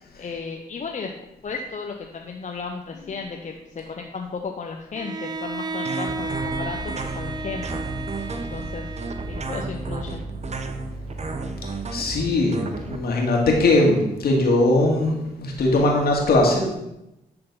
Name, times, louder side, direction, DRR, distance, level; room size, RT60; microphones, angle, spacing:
voice 1, 0.2-1.1 1.4-7.8 8.4-8.9 9.3-10.2, left 5 dB, 45° left, 2 dB, 0.8 m, -34 dB
Bowed string instrument, 4.9-10.0, right 3 dB, 25° right, 0.5 m, -33 dB
sound 1, 5.9-13.0, right 3 dB, 40° right, 0.9 m, -33 dB
sound 2, 7.0-12.3, right 2 dB, 70° right, 1.0 m, -37 dB
voice 2, 11.9-16.7, left 2 dB, 60° left, -1 dB, 2.0 m, -20 dB
10.5 x 3.9 x 4.0 m, 0.89 s
hypercardioid pair, 45°, 18 cm